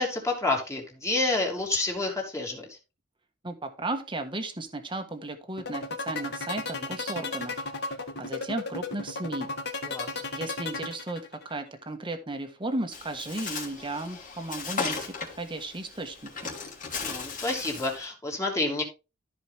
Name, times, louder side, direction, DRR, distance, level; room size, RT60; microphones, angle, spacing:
voice 1, 0.0-2.7 9.8-10.1 17.0-18.8, left 2 dB, 15° left, 0 dB, 2.9 m, -29 dB
voice 2, 3.4-7.5 8.2-9.5 10.3-16.5, right 2 dB, 25° right, 6 dB, 1.5 m, -35 dB
sound 1, 5.6-11.5, left 3 dB, 60° left, 1.9 m, -34 dB
Bird, 12.9-18.0, left 5 dB, 45° left, 2.6 m, -36 dB
14.0 x 5.1 x 3.4 m, 0.29 s
head